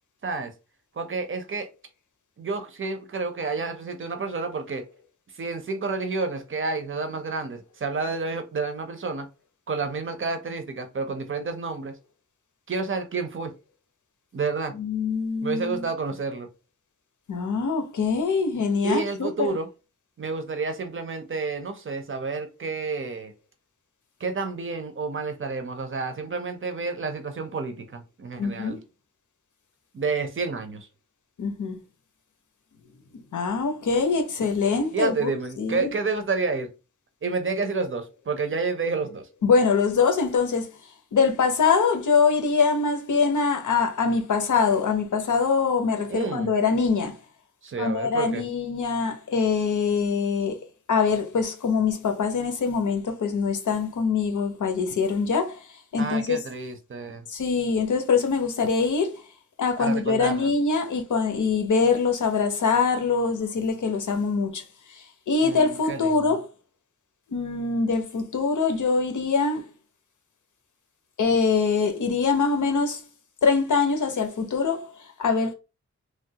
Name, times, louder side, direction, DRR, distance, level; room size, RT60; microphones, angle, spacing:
voice 1, 1.0-1.7 2.4-4.8 5.4-9.3 9.7-11.9 12.7-13.5 14.3-14.7 15.4-16.5 18.8-19.7 20.2-23.3 24.2-28.8 29.9-30.9 34.9-36.7 37.2-39.3 46.1-46.5 47.6-48.4 56.0-57.2 59.8-60.5 65.4-66.4, right 4 dB, 45° right, 0.5 m, -30 dB
voice 2, 14.8-15.9 17.3-19.5 28.4-28.8 31.4-31.8 33.3-35.9 39.4-40.7 41.1-47.1 47.8-50.6 50.9-55.6 55.9-56.4 57.3-59.2 59.6-64.6 65.3-66.5 67.3-69.7 71.2-73.0 73.4-75.5, left 5 dB, 80° left, 0.7 m, -23 dB
3.1 x 2.3 x 2.7 m
wide cardioid pair, 155°, 30 cm